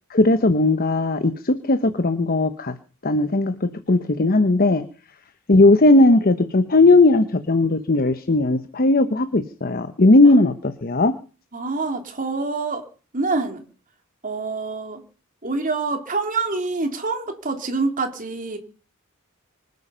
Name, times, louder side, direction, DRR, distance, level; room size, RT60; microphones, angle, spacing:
voice 1, 0.1-2.7 3.0-4.8 5.5-11.1, left 2 dB, 45° left, 1.0 m, -17 dB
voice 2, 11.5-12.8 13.1-13.6 14.2-15.0 15.4-18.6, right 3 dB, 40° right, 3.1 m, -26 dB
25.0 x 9.5 x 5.7 m
head